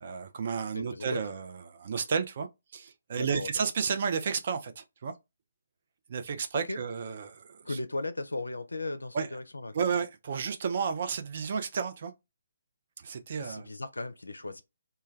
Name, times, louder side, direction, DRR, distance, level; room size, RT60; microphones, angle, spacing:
voice 1, 0.0-2.5 2.7-5.1 6.1-7.8 9.1-9.3 9.7-12.1 13.0-13.7, right 6 dB, 45° right, 0.4 m, -32 dB
voice 2, 0.7-1.2 3.1-3.5 6.6-6.8 7.6-9.8 13.4-14.6, left 2 dB, 75° left, 0.4 m, -36 dB
2.2 x 2.2 x 3.1 m
figure-of-eight pair, 140°, 0 cm